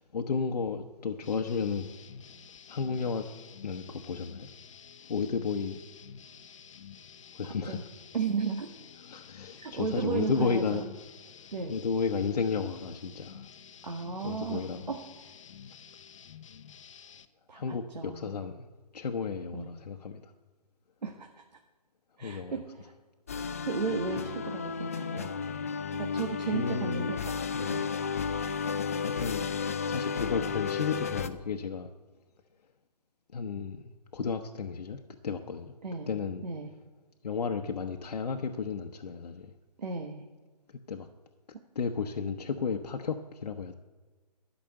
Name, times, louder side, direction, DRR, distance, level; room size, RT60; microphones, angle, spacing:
voice 1, 0.0-1.9 2.7-3.3 3.6-4.5 5.1-5.8 7.3-7.8 9.0-10.8 11.4-13.4 14.2-14.9 17.5-18.7 18.9-20.3 22.2-22.6 26.5-27.2 27.5-27.8 29.2-29.4 29.9-31.9 33.3-35.7 36.1-36.5 37.2-39.5 40.9-41.1 41.7-43.7, left 5 dB, 75° left, 3 dB, 1.0 m, -33 dB
sound 1, 1.2-17.3, left 7 dB, 50° left, 0.8 m, -50 dB
voice 2, 8.1-8.7 9.6-10.8 11.5-11.8 13.8-15.0 17.5-18.3 19.5-19.7 21.0-21.4 22.2-22.9 23.7-25.3 25.9-27.3 27.7-27.9 35.8-36.1 36.4-36.7 39.8-40.3 41.5-41.6, right 5 dB, 90° right, 2 dB, 1.7 m, -34 dB
sound 2, 23.3-31.3, left 6 dB, 20° left, 0.4 m, -33 dB
13.0 x 6.0 x 8.8 m, 1.3 s
hypercardioid pair, 165°, 21 cm